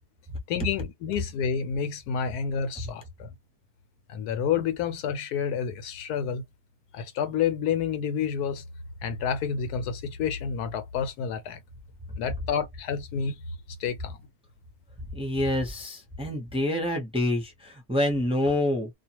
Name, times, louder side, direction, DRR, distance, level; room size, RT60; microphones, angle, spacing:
voice 1, 0.5-3.3 4.1-6.4 6.9-8.6 9.0-11.6 12.2-13.4 13.8-14.2, left 7 dB, 90° left, 1.2 m, -29 dB
voice 2, 15.1-18.9, left 1 dB, 5° right, 0.6 m, -27 dB
2.5 x 2.3 x 2.8 m
omnidirectional pair, 1.6 m